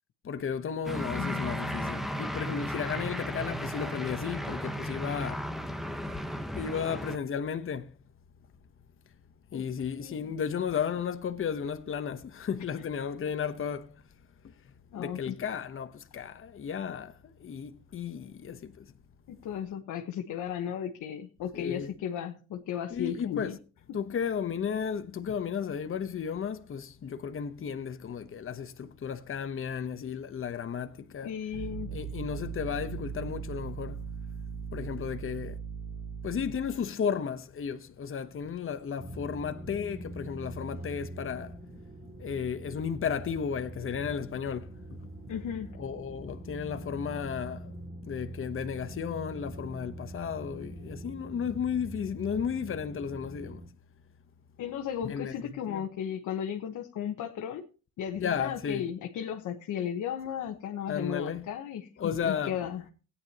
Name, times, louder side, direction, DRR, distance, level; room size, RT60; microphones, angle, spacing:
voice 1, 0.2-5.5 6.5-7.9 9.5-14.0 15.0-18.9 21.5-21.9 22.9-23.6 23.9-31.3 31.9-34.0 34.7-35.6 36.2-41.5 42.2-44.7 45.8-47.7 48.1-53.6 55.0-55.3 55.7-55.8 58.2-58.8 60.9-61.5 62.0-62.6, left 7 dB, 45° left, 1.1 m, -34 dB
sound 1, 0.9-7.2, equal, ahead, 1.2 m, -35 dB
voice 2, 1.2-1.5 9.5-9.6 10.0-10.3 14.9-15.3 19.3-23.6 31.2-31.9 45.3-45.7 54.6-57.6 58.0-62.9, left 9 dB, 75° left, 1.2 m, -35 dB
sound 2, 31.5-36.9, right 6 dB, 90° right, 1.7 m, -39 dB
sound 3, 39.0-53.7, right 1 dB, 35° right, 2.5 m, -43 dB
17.0 x 9.8 x 3.0 m
cardioid pair, 90°, 30 cm